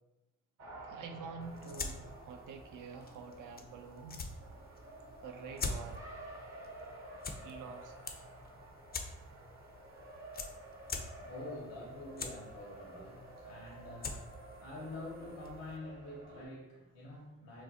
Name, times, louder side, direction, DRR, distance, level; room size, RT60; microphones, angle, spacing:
Race car auto racing, 0.6-16.5, right 1 dB, 45° right, 0.9 m, -51 dB
voice 1, 0.8-4.2 5.2-6.1 7.4-8.3, right 5 dB, 60° right, 5 dB, 0.5 m, -47 dB
sound 1, 1.4-15.8, left 3 dB, 30° left, 0.4 m, -46 dB
voice 2, 10.8-17.6, left 1 dB, 85° left, -3 dB, 0.8 m, -47 dB
2.5 x 2.1 x 3.8 m, 1.0 s
supercardioid pair, 55°, 35 cm